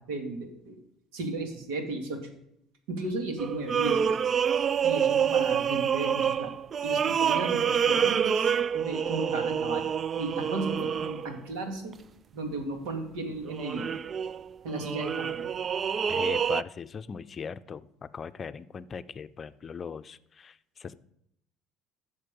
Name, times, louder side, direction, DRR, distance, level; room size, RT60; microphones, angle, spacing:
voice 1, 0.1-0.8 1.1-2.3 2.9-4.2 4.8-6.5 6.8-9.9 10.2-12.0 12.3-13.9 14.6-15.5, right 2 dB, 85° right, 5 dB, 2.3 m, -35 dB
sound 1, 3.4-11.4 11.9-12.0 13.3-16.6, right 8 dB, 40° right, 0.3 m, -27 dB
voice 2, 16.1-21.0, left 6 dB, 35° left, 13 dB, 0.6 m, -39 dB
13.0 x 7.3 x 5.3 m, 0.76 s
supercardioid pair, 90°, 0 cm